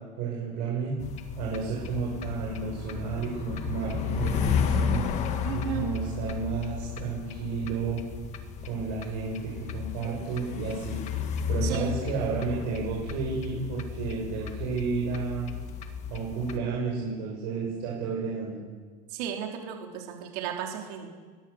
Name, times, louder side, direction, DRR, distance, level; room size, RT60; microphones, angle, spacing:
voice 1, 0.2-1.0 1.4-5.0 5.5-8.0 8.6-11.0 11.5-15.5 16.1-18.6, right 5 dB, 60° right, -4 dB, 6.7 m, -32 dB
sound 1, 1.0-16.6, left 7 dB, 35° left, 1.7 m, -33 dB
voice 2, 5.4-5.9 11.6-12.0 19.1-21.1, right 9 dB, 75° right, 1 dB, 3.5 m, -34 dB
22.0 x 18.0 x 7.1 m, 1.5 s
cardioid pair, 170°, 21 cm